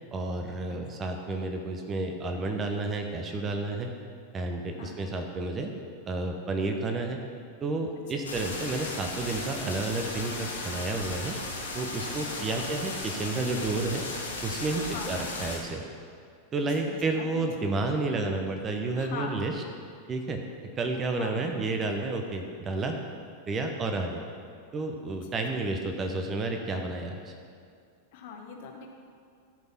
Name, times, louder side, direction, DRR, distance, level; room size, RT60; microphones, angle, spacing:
voice 1, 0.1-3.9 4.3-5.7 6.1-7.2 7.6-11.3 11.7-14.0 14.4-15.8 16.5-19.5 20.1-20.4 20.8-23.0 23.5-24.2 24.7-27.3, right 3 dB, 25° right, 4 dB, 0.9 m, -31 dB
sound 1, 8.2-15.6, left 2 dB, 75° left, 1.7 m, -36 dB
voice 2, 14.8-15.2 16.9-17.7 18.9-19.5 21.1-21.5 28.1-28.9, left 5 dB, 50° left, 3 dB, 1.2 m, -41 dB
14.0 x 5.4 x 5.9 m, 2.2 s
figure-of-eight pair, 90°, 0 cm